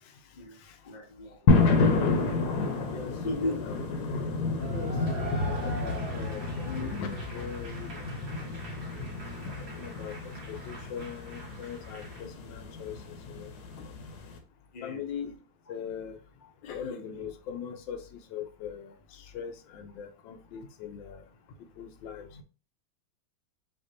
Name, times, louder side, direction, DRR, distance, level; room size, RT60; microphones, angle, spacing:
voice 1, 0.9-1.5 3.2-3.7 12.2-12.3 14.7-15.1 15.7-15.8 16.4-16.5, left 2 dB, 45° left, 0.5 m, -36 dB
sound 1, 1.5-14.4, left 3 dB, 60° left, 1.3 m, -30 dB
voice 2, 2.9-3.8 4.5-8.1 9.4-10.2 10.5-13.0 13.3-13.5 14.8-15.3 15.7-16.2 16.6-21.2 21.8-22.4, left 7 dB, 80° left, 1.4 m, -40 dB
Cheering / Applause / Crowd, 4.6-12.2, right 2 dB, 50° right, 1.9 m, -44 dB
5.7 x 3.0 x 2.8 m
omnidirectional pair, 2.1 m